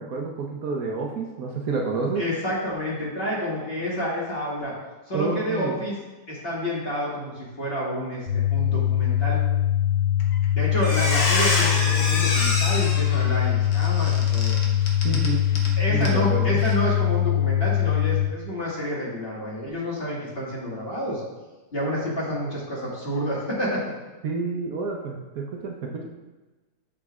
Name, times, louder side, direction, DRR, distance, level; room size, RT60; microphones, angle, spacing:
voice 1, 0.0-2.2 5.1-5.8 15.0-15.5 15.9-16.6 24.2-26.1, right 4 dB, 60° right, 0 dB, 1.2 m, -29 dB
voice 2, 2.2-4.7 5.1-5.9 6.3-9.4 10.5-14.6 15.8-21.2 21.7-23.8, equal, 35° left, -5 dB, 2.0 m, -29 dB
sound 1, 8.3-18.3, left 11 dB, 35° right, 1.2 m, -22 dB
Squeak, 10.2-10.4 10.7-15.7 16.0-16.2 16.6-16.7, left 2 dB, 75° left, 1.7 m, -27 dB
10.0 x 6.2 x 2.4 m, 1.2 s
omnidirectional pair, 1.8 m